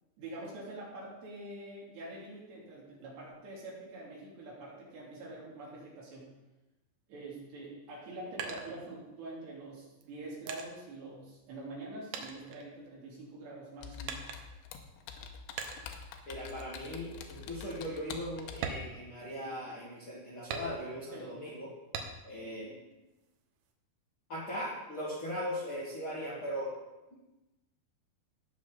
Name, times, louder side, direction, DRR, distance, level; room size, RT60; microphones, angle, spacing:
voice 1, 0.2-6.3 7.1-14.2 21.1-21.3, right 2 dB, 70° right, -5 dB, 5.1 m, -45 dB
sound 1, 7.9-9.4 10.0-11.8 12.1-13.3 14.1-14.7 15.6-16.1 16.5-16.8 17.2-17.3 17.7-17.9 18.5-19.7 20.5-21.2 21.9-22.5 22.9-23.7, right 6 dB, 85° right, 3.3 m, -42 dB
Computer keyboard, 13.8-18.7, left 7 dB, 90° left, 3.2 m, -46 dB
voice 2, 16.3-21.7 22.2-22.7 24.3-26.7, equal, 50° left, -7 dB, 1.6 m, -39 dB
18.0 x 6.3 x 4.0 m, 1.0 s
omnidirectional pair, 5.2 m